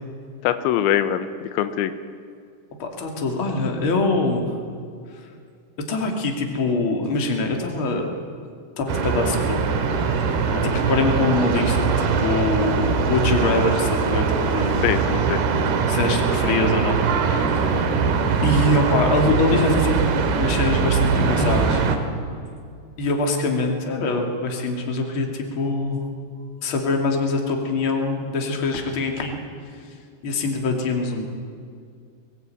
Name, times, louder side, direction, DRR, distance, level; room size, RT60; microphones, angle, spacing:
voice 1, 0.4-1.3 1.5-1.9 10.5-10.8 14.8-15.4, left 10 dB, 90° left, 10 dB, 3.3 m, -23 dB
voice 2, 2.8-4.5 5.9-8.1 8.8-9.6 10.0-10.3 10.5-14.9 15.9-17.0 17.2-17.7 18.4-21.9 23.0-26.0 26.6-29.4 30.2-31.3, left 2 dB, 35° left, 2 dB, 2.8 m, -24 dB
sound 1, 8.9-22.0, right 5 dB, 65° right, 3.4 m, -22 dB
22.5 x 19.0 x 9.2 m, 2.3 s
omnidirectional pair, 5.2 m